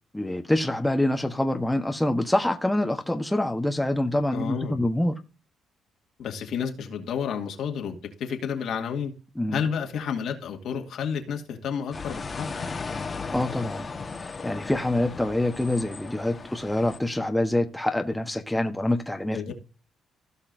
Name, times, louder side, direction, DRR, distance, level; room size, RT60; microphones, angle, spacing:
voice 1, 0.1-5.2 9.4-9.6 13.3-13.9 14.2-19.5, left 1 dB, 5° left, 1.2 m, -26 dB
voice 2, 4.3-4.8 6.2-9.1 9.5-12.5 19.3-19.5, left 7 dB, 75° left, 2.3 m, -30 dB
sound 1, 11.9-17.0, left 4 dB, 30° left, 1.5 m, -36 dB
16.5 x 5.6 x 2.7 m
cardioid pair, 90°, 0 cm